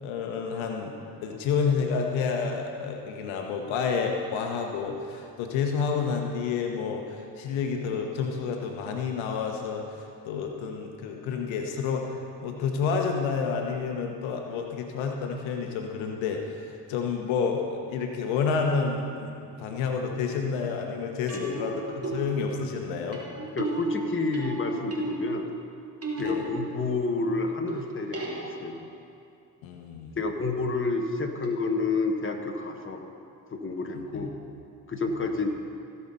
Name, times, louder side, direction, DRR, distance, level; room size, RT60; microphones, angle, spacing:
voice 1, 0.0-0.9 1.2-23.2 26.2-26.4 29.6-30.2 33.9-34.3, left 5 dB, 75° left, 3 dB, 1.3 m, -29 dB
sound 1, 19.5-19.9 21.3-27.2 27.7-29.0 31.4-31.5, right 3 dB, 30° right, 2.6 m, -36 dB
voice 2, 21.3-21.7 23.5-25.5 26.2-28.9 30.2-33.0 33.5-34.3 34.9-35.5, left 3 dB, 25° left, 3 dB, 1.5 m, -29 dB
17.0 x 5.8 x 5.6 m, 2.4 s
hypercardioid pair, 60°, 48 cm